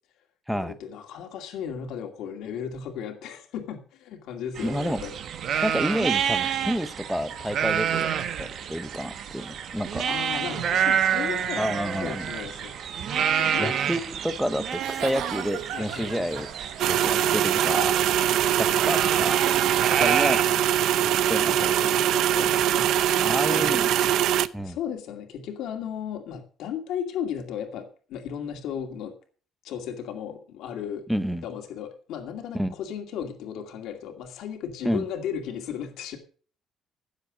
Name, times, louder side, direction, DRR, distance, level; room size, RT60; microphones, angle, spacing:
voice 1, 0.5-5.1 10.1-12.7 13.1-13.7 15.7-16.5 16.8-17.3 20.4-20.6 21.4-23.8 24.6-29.1 29.6-31.1 31.4-36.2, left 8 dB, 70° left, 2.3 m, -35 dB
voice 2, 4.6-5.0 5.6-8.1 8.4-10.1 11.6-12.2 13.6-16.5 16.8-18.3 18.6-19.6 19.9-20.4 21.0-21.7 23.2-24.1 24.5-24.8 31.1-31.5 32.5-32.7 34.8-35.0, equal, ahead, 0.7 m, -29 dB
sound 1, 4.6-20.4, right 8 dB, 45° right, 1.1 m, -28 dB
Giggle / Chuckle chortle, 14.7-20.2, right 10 dB, 85° right, 1.2 m, -37 dB
sound 2, 16.8-24.5, right 11 dB, 65° right, 0.6 m, -22 dB
16.0 x 7.6 x 5.0 m
cardioid pair, 175°, 0 cm